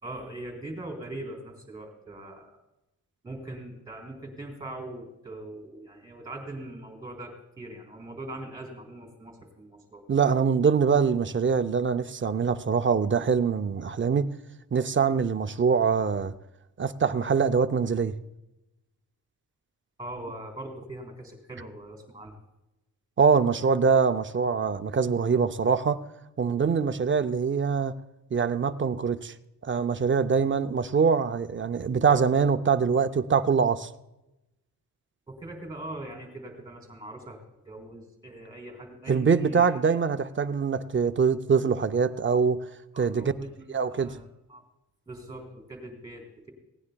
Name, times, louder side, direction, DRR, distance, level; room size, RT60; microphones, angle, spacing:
voice 1, 0.0-2.6 3.2-10.0 20.0-22.3 35.3-37.4 37.7-39.7 42.9-44.6 45.1-46.5, right 1 dB, 10° right, 3.4 m, -41 dB
voice 2, 10.1-14.3 14.7-16.3 16.8-18.1 23.2-26.0 26.4-27.9 28.3-29.3 29.6-33.9 39.1-42.6 43.0-43.3 43.7-44.1, right 6 dB, 35° right, 0.5 m, -24 dB
19.5 x 17.0 x 2.3 m
wide cardioid pair, 175°, 36 cm